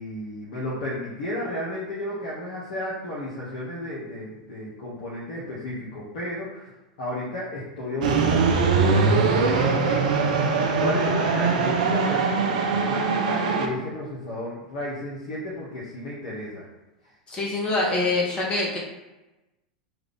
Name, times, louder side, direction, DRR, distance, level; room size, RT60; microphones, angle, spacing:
voice 1, 0.0-6.7 7.0-8.5 8.8-10.1 10.8-16.6, left 1 dB, 65° left, -6 dB, 0.9 m, -33 dB
sound 1, 8.0-13.7, right 4 dB, 65° right, 0.5 m, -22 dB
voice 2, 17.3-18.8, left 2 dB, 25° left, -4 dB, 1.0 m, -25 dB
3.3 x 2.4 x 3.4 m, 1.0 s
hypercardioid pair, 90°, 4 cm